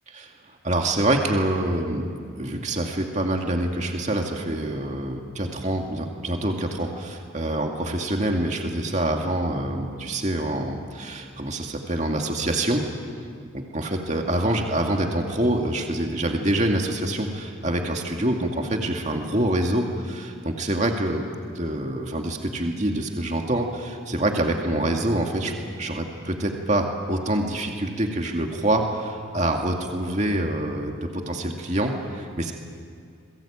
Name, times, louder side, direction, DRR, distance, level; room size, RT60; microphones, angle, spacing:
voice 1, 0.1-2.1 2.4-12.8 13.5-21.2 21.5-32.5, right 1 dB, 35° right, 2 dB, 2.3 m, -26 dB
28.0 x 22.0 x 8.8 m, 2.3 s
head